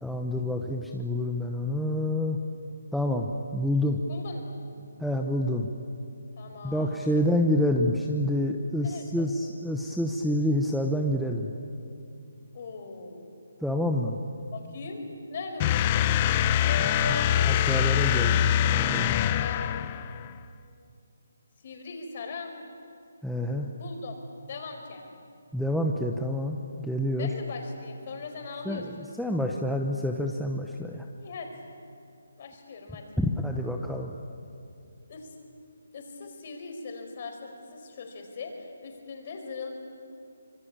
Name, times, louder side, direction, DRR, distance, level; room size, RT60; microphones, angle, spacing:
voice 1, 0.0-2.4 2.9-4.0 5.0-5.7 6.6-11.5 13.6-14.2 17.4-19.2 23.2-23.7 25.5-27.3 28.6-31.1 33.2-34.1, left 1 dB, ahead, 0 dB, 0.8 m, -28 dB
voice 2, 4.1-4.6 6.4-7.3 8.8-9.3 12.5-13.4 14.5-15.0 15.3-17.4 18.1-19.7 21.6-22.5 23.8-24.1 24.5-25.0 27.2-29.1 31.2-31.5 32.4-33.1 35.1-35.3 35.9-39.8, left 4 dB, 40° left, 4 dB, 4.7 m, -40 dB
sound 1, 15.6-20.3, left 10 dB, 25° left, 0.6 m, -24 dB
25.5 x 23.0 x 8.7 m, 2.6 s
hypercardioid pair, 165°, 0 cm